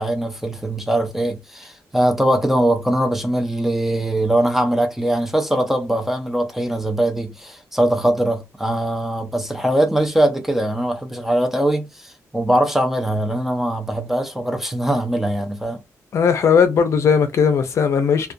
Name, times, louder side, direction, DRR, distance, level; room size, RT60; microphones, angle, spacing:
voice 1, 0.0-15.8, right 1 dB, 5° right, 0.4 m, -21 dB
voice 2, 16.1-18.3, left 6 dB, 55° left, 0.5 m, -17 dB
2.4 x 2.2 x 2.6 m
wide cardioid pair, 180°, 6 cm